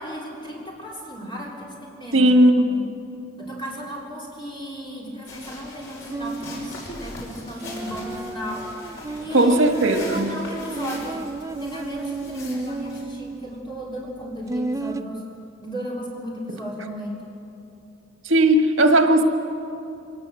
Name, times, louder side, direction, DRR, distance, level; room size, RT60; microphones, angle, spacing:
voice 1, 0.0-2.8 3.4-8.9 9.2-9.6 9.9-11.2 11.6-15.2 15.6-17.2, equal, 25° left, -3 dB, 3.5 m, -35 dB
voice 2, 2.1-2.8 9.3-10.4 18.2-19.2, right 1 dB, 75° right, 5 dB, 1.6 m, -17 dB
sound 1, 5.3-13.0, left 2 dB, 75° left, 5.8 m, -41 dB
sound 2, 6.1-15.0, right 3 dB, 15° right, 0.5 m, -33 dB
24.5 x 18.5 x 7.8 m, 2.8 s
head